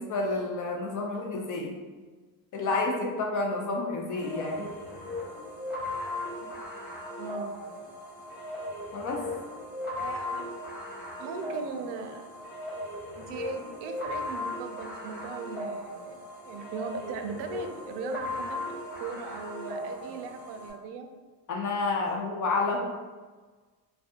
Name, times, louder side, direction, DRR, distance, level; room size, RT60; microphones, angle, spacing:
voice 1, 0.0-1.7 2.5-4.7 8.9-9.2 21.5-22.9, left 3 dB, 50° left, 0 dB, 0.5 m, -29 dB
sound 1, 4.2-20.7, left 1 dB, 25° left, 1.3 m, -37 dB
voice 2, 7.2-7.5 10.0-10.5 11.2-12.2 13.1-18.6 19.0-21.1, right 5 dB, 75° right, 6 dB, 0.5 m, -39 dB
3.3 x 2.2 x 2.7 m, 1.4 s
cardioid pair, 135°, 41 cm